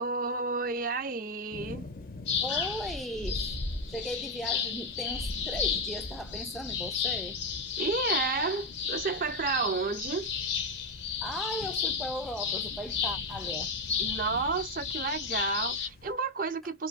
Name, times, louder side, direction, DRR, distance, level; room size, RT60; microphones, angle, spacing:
voice 1, 0.0-1.9 7.8-10.3 14.0-16.9, right 4 dB, 50° right, 0.6 m, -31 dB
sound 1, 1.5-16.1, left 2 dB, 55° left, 0.5 m, -46 dB
sound 2, 2.3-15.9, left 6 dB, 85° left, 0.7 m, -33 dB
voice 2, 2.4-3.6 3.9-7.4 11.2-13.7, equal, ahead, 0.3 m, -37 dB
3.1 x 2.5 x 2.4 m
head